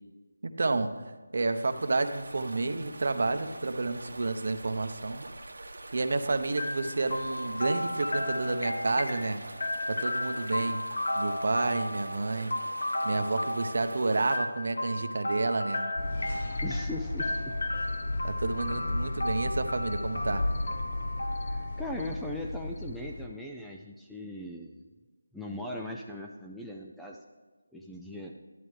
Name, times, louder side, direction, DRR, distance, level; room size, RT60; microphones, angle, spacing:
voice 1, 0.4-5.3 5.5-9.4 9.9-10.8 11.1-12.5 13.0-15.9 18.2-20.4, right 3 dB, 55° right, 8 dB, 0.8 m, -30 dB
sound 1, 1.5-14.4, right 2 dB, 75° right, 1.2 m, -45 dB
sound 2, 6.6-22.4, left 1 dB, 75° left, 1.2 m, -34 dB
sound 3, 16.0-23.3, left 2 dB, 45° left, 0.9 m, -34 dB
voice 2, 16.6-17.6 21.5-24.8 25.3-27.2 27.7-28.3, left 1 dB, ahead, -2 dB, 0.3 m, -39 dB
12.0 x 11.0 x 3.2 m, 1.3 s
figure-of-eight pair, 170°, 0 cm